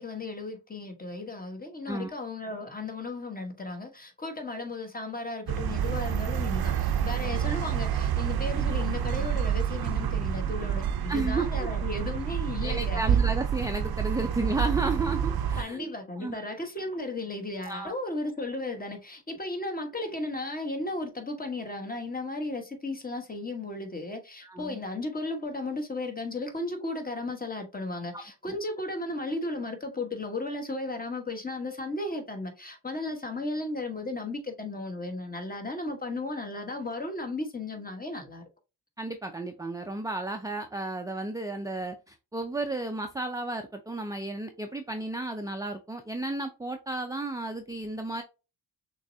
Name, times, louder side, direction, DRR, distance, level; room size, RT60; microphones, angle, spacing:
voice 1, 0.0-13.0 15.6-38.4, left 2 dB, 20° left, 1.2 m, -35 dB
sound 1, 5.5-15.6, right 8 dB, 60° right, 0.6 m, -28 dB
voice 2, 11.1-11.7 12.6-15.9 16.2-16.4 17.7-17.9 24.4-24.8 28.1-28.6 39.0-48.2, right 2 dB, 10° right, 0.4 m, -33 dB
6.3 x 3.1 x 2.7 m
wide cardioid pair, 120°, 42 cm